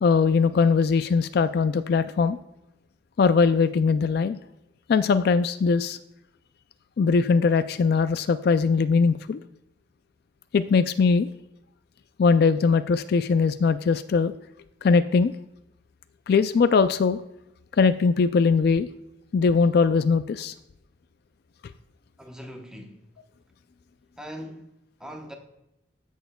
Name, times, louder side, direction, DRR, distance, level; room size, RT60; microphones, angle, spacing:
voice 1, 0.0-2.4 3.2-4.4 4.9-6.0 7.0-9.4 10.5-11.3 12.2-14.3 14.8-15.3 16.3-17.2 17.8-18.9 19.3-20.5, left 5 dB, 50° left, 0.3 m, -21 dB
voice 2, 22.2-23.1 24.2-24.7 25.0-25.3, equal, 5° right, 0.8 m, -40 dB
15.0 x 6.4 x 2.2 m
head